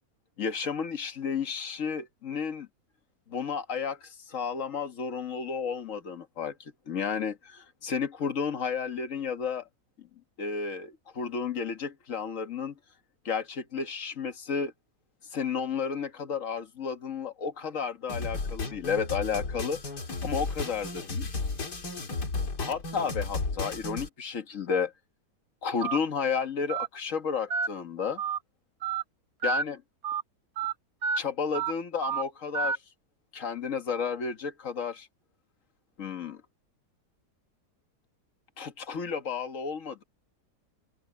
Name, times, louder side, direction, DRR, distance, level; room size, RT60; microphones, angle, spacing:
voice 1, 0.4-2.7 3.3-9.7 10.0-10.1 10.4-12.8 13.3-14.7 15.3-19.8 20.2-21.3 22.6-24.9 25.6-28.2 29.4-29.8 31.2-32.8 33.3-35.1 36.0-36.4 38.6-40.0, left 6 dB, 50° left, 1.8 m, -32 dB
sound 1, 18.1-24.1, left 3 dB, 85° left, 3.3 m, -34 dB
Telephone, 25.8-26.0 26.7-26.9 27.5-27.7 28.2-28.4 28.8-29.0 29.4-29.6 30.0-30.2 30.6-30.7 31.0-31.2 31.5-31.7 32.0-32.2 32.5-32.8, right 6 dB, 60° right, 2.0 m, -29 dB
open air
omnidirectional pair, 1.7 m